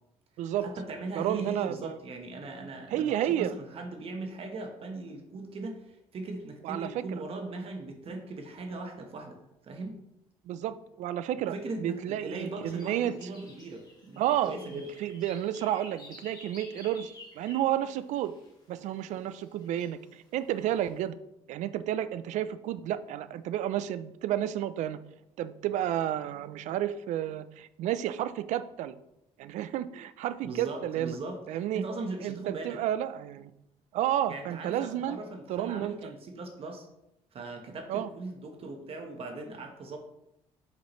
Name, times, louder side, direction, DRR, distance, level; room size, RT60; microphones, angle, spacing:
voice 1, 0.6-9.4 9.6-10.0 11.5-14.9 30.4-32.8 34.3-36.9 37.3-40.0, right 2 dB, 50° right, 3 dB, 1.0 m, -39 dB
voice 2, 1.2-2.0 2.9-3.5 6.6-7.2 10.5-13.1 14.2-14.6 15.0-18.3 18.7-21.2 21.5-25.0 25.4-29.0 29.4-31.2 31.5-31.8 32.2-33.5 33.9-35.2 35.5-36.1 37.9-38.1, right 11 dB, 75° right, 14 dB, 0.4 m, -31 dB
sound 1, 12.6-18.5 19.4-20.1 20.6-20.9, left 1 dB, 35° left, 1.9 m, -52 dB
5.8 x 5.7 x 3.1 m, 0.83 s
cardioid pair, 105°, 12 cm